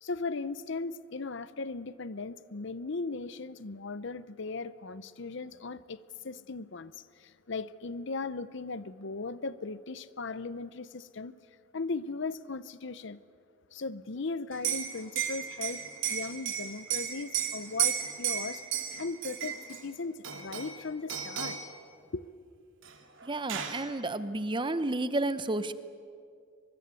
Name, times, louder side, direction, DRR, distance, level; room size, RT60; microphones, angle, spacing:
voice 1, 0.0-11.3 11.7-13.2 13.7-15.8 16.1-18.6 19.0-21.6 22.1-22.3, left 3 dB, 60° left, 0.7 m, -37 dB
Liquid, 14.5-19.8 20.2-20.8 21.1-21.7 22.8-22.9 23.2-23.8, right 9 dB, 65° right, 2.5 m, -33 dB
voice 2, 23.2-25.7, right 2 dB, 25° right, 0.8 m, -31 dB
24.5 x 23.5 x 8.3 m
head